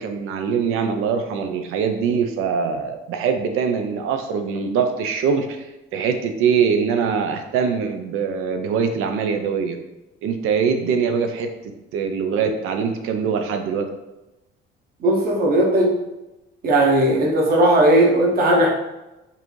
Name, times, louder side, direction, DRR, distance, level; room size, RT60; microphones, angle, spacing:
voice 1, 0.0-5.7 5.9-9.8 10.2-11.5 11.9-13.9, right 6 dB, 80° right, 6 dB, 0.5 m, -23 dB
voice 2, 15.0-16.0 16.6-18.7, right 1 dB, 45° right, 0 dB, 0.9 m, -17 dB
5.3 x 2.6 x 3.1 m, 0.98 s
cardioid pair, 150°, 21 cm